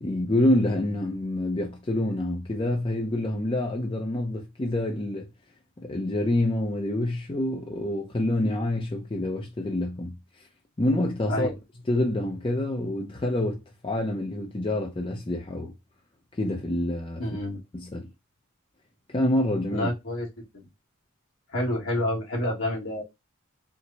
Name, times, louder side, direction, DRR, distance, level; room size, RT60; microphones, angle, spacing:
voice 1, 0.0-5.3 5.8-10.2 10.8-11.5 11.9-15.7 16.4-17.2 17.7-18.1 19.1-19.9, left 1 dB, 25° left, 0.5 m, -27 dB
voice 2, 17.2-17.6 19.7-20.3 20.5-20.7 21.5-23.0, left 1 dB, 75° left, 1.7 m, -28 dB
4.5 x 2.2 x 3.9 m
head